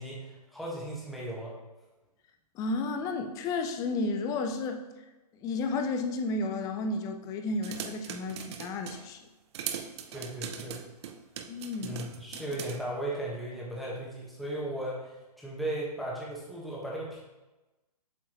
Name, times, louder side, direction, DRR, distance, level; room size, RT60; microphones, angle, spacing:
voice 1, 0.0-1.5 10.1-10.8 11.8-17.2, right 1 dB, ahead, -6 dB, 1.5 m, -36 dB
voice 2, 2.6-4.8 5.4-9.2 11.5-12.0 12.3-12.4, left 3 dB, 15° left, 6 dB, 0.5 m, -32 dB
sound 1, 7.6-9.1 9.5-12.8, right 8 dB, 40° right, 0.5 m, -40 dB
7.8 x 4.7 x 3.1 m, 1.1 s
hypercardioid pair, 135°, 21 cm